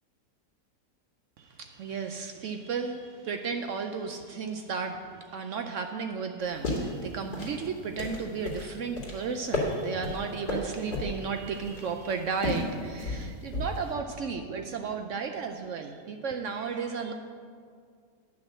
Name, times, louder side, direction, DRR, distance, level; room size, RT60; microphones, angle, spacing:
voice 1, 1.4-17.1, right 5 dB, 75° right, 6 dB, 0.7 m, -34 dB
sound 1, 6.4-13.9, left 1 dB, 65° left, 2.7 m, -34 dB
9.9 x 6.0 x 7.3 m, 2.2 s
omnidirectional pair, 1.8 m